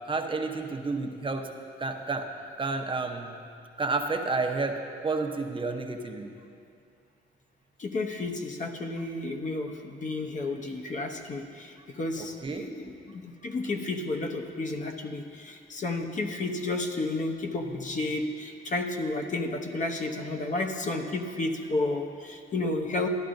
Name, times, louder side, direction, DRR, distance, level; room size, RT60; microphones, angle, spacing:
voice 1, 0.1-1.5 1.8-2.3 2.6-3.4 3.8-4.8 5.0-6.3 12.2-12.6, right 3 dB, 25° right, 4 dB, 0.9 m, -30 dB
voice 2, 7.8-23.1, left 2 dB, 40° left, 3 dB, 0.9 m, -32 dB
13.0 x 11.0 x 2.6 m, 2.4 s
cardioid pair, 90°, 20 cm